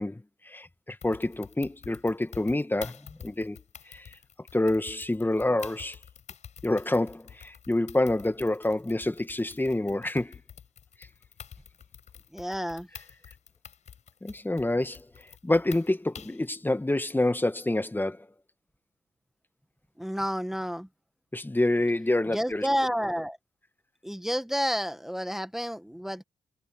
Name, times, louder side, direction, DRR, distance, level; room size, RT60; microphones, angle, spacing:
voice 1, 0.0-3.6 3.9-4.2 4.5-6.0 6.6-10.4 14.2-18.3 21.3-22.7, left 1 dB, 15° left, 2.0 m, -27 dB
sound 1, 1.0-16.5, left 8 dB, 60° left, 6.6 m, -48 dB
voice 2, 12.3-12.9 20.0-20.9 22.3-23.4 24.0-26.2, equal, 5° right, 1.7 m, -30 dB
hypercardioid pair, 45°, 13 cm